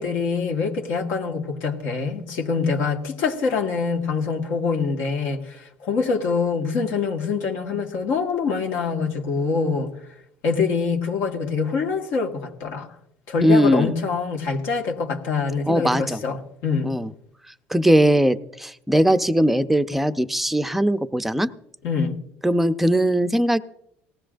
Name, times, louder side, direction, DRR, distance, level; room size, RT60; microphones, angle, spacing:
voice 1, 0.0-9.9 10.4-12.9 13.3-16.9 21.8-22.2, left 5 dB, 70° left, 1.7 m, -25 dB
voice 2, 13.4-13.9 15.7-16.2 16.8-17.1 17.7-21.5 22.4-23.6, equal, 5° right, 0.5 m, -20 dB
19.0 x 15.5 x 2.6 m
cardioid pair, 125°, 5 cm